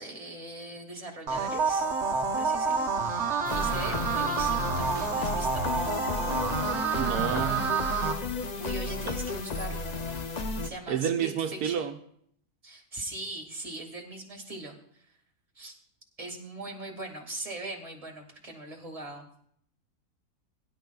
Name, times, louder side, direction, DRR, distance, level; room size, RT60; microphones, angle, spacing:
voice 1, 0.0-1.9 2.3-5.6 8.6-10.0 10.6-11.9 12.6-14.8 15.6-15.7 16.2-19.3, right 2 dB, 25° right, 2.2 m, -40 dB
sound 1, 1.3-8.1, right 4 dB, 50° right, 1.2 m, -28 dB
sound 2, 3.4-10.7, left 3 dB, 50° left, 0.5 m, -33 dB
voice 2, 6.9-7.8 9.1-9.2 10.9-11.9, right 8 dB, 85° right, 1.2 m, -29 dB
22.0 x 11.0 x 2.3 m
omnidirectional pair, 1.6 m